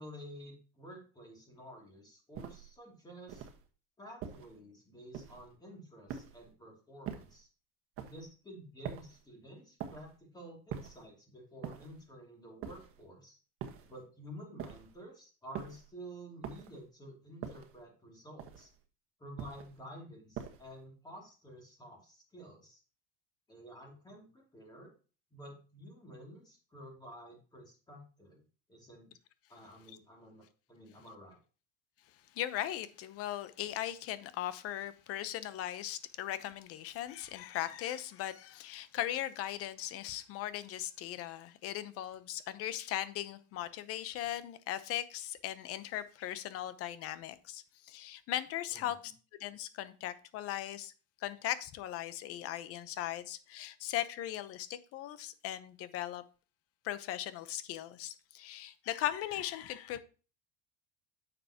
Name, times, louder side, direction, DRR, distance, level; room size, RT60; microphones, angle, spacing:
voice 1, 0.0-3.5 4.0-7.5 8.0-13.4 13.8-18.7 19.2-22.8 23.5-24.9 25.3-28.4 28.7-29.1 29.5-31.4 48.7-49.1, equal, 15° left, 2.7 m, -51 dB
sound 1, 2.3-2.7 3.3-3.7 4.2-4.6 5.1-5.5 6.1-6.5 7.0-7.4 8.0-8.3 8.8-9.2 9.8-10.2 10.7-11.1 11.6-12.0 12.6-13.0 13.6-14.0 14.6-15.0 15.5-15.9 16.4-16.8 17.4-17.8 18.4-18.8 19.4-19.8 20.4-20.8, right 8 dB, 45° right, 1.4 m, -44 dB
voice 2, 32.3-49.1 49.4-50.9 51.2-56.2 56.8-60.0, left 12 dB, 50° left, 0.9 m, -38 dB
9.1 x 6.8 x 2.9 m
supercardioid pair, 130°, 30 cm